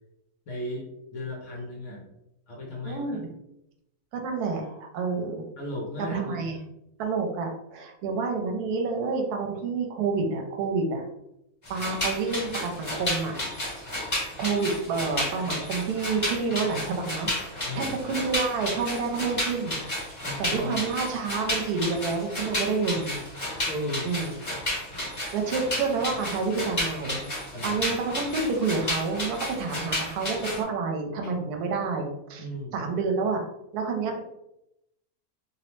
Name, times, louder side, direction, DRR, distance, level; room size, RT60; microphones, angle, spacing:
voice 1, 0.5-2.1 2.5-3.2 5.6-6.6 17.6-18.0 20.2-20.8 23.7-24.1 27.5-27.8 32.4-32.7, left 1 dB, 65° left, -1 dB, 0.8 m, -35 dB
voice 2, 2.8-3.3 4.1-5.4 6.0-6.6 7.0-11.0 11.7-13.4 13.7-13.9 14.4-19.8 20.4-23.2 24.0-24.3 25.3-27.2 27.6-32.4 32.7-33.4 33.7-34.2, right 4 dB, 80° right, 3 dB, 1.1 m, -29 dB
sound 1, 11.6-30.6, left 1 dB, 25° left, 1.0 m, -32 dB
2.7 x 2.0 x 3.0 m, 0.84 s
omnidirectional pair, 1.7 m